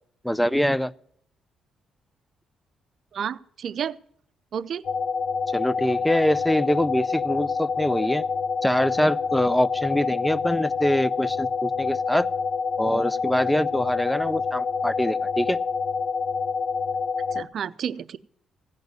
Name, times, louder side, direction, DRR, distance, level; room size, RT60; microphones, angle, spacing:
voice 1, 0.2-0.9 5.5-8.2 8.6-12.3 12.8-15.6, equal, 5° left, 19 dB, 0.5 m, -24 dB
voice 2, 3.1-4.0 4.5-4.8 17.3-18.2, right 8 dB, 60° right, 13 dB, 0.6 m, -31 dB
sound 1, 4.8-17.4, left 5 dB, 55° left, 0.4 m, -27 dB
16.0 x 5.3 x 9.2 m, 0.66 s
cardioid pair, 90°, 0 cm